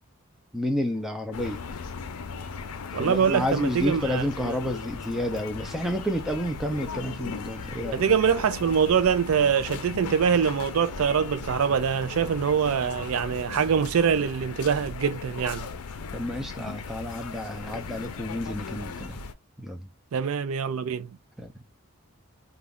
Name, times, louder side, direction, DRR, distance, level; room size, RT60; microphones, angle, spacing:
voice 1, 0.5-1.6 3.0-8.0 16.1-19.2 19.6-19.9 21.4-21.5, equal, ahead, 0.4 m, -30 dB
sound 1, 1.3-19.3, left 5 dB, 90° left, 0.5 m, -37 dB
voice 2, 2.9-4.6 7.9-15.7 20.1-21.1, right 7 dB, 70° right, 0.4 m, -24 dB
2.4 x 2.3 x 3.5 m
head